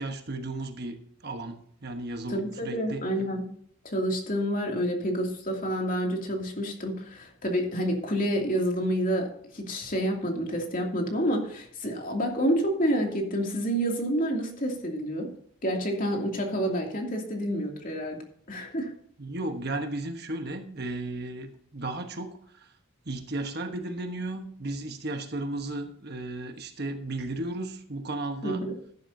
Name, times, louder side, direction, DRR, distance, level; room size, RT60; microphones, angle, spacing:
voice 1, 0.0-3.0 19.2-22.7 23.0-28.6, right 2 dB, 50° right, 6 dB, 1.2 m, -34 dB
voice 2, 2.3-3.4 3.8-15.3 15.6-18.2 18.5-18.9 28.4-28.7, equal, 40° left, 1 dB, 2.7 m, -28 dB
14.5 x 11.0 x 2.8 m, 0.62 s
head